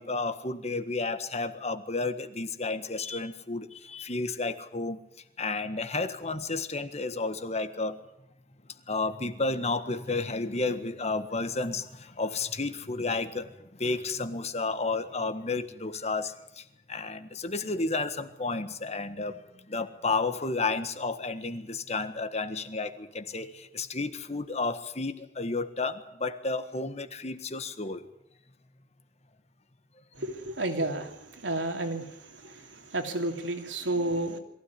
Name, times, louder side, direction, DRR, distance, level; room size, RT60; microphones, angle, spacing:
voice 1, 0.0-5.0 5.4-8.0 8.9-19.4 19.7-28.1, left 3 dB, 35° left, 10 dB, 1.6 m, -32 dB
voice 2, 30.2-32.1 32.4-34.4, right 2 dB, 85° right, 5 dB, 3.0 m, -31 dB
22.0 x 16.0 x 9.7 m, 0.81 s
head